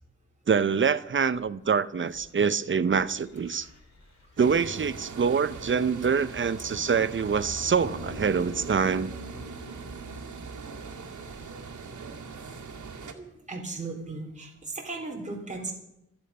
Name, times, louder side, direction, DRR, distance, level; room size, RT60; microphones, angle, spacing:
voice 1, 0.5-3.7 4.4-9.1, right 6 dB, 40° right, 0.6 m, -25 dB
sound 1, 1.0-5.9 6.6-10.0 10.7-10.8, left 2 dB, 65° left, 4.1 m, -51 dB
sound 2, 4.4-13.1, right 5 dB, 80° right, 2.0 m, -41 dB
sound 3, 7.8-12.4, equal, 20° left, 3.5 m, -45 dB
voice 2, 13.1-15.7, right 3 dB, 25° right, 3.4 m, -36 dB
25.5 x 8.7 x 5.5 m
wide cardioid pair, 120°, 29 cm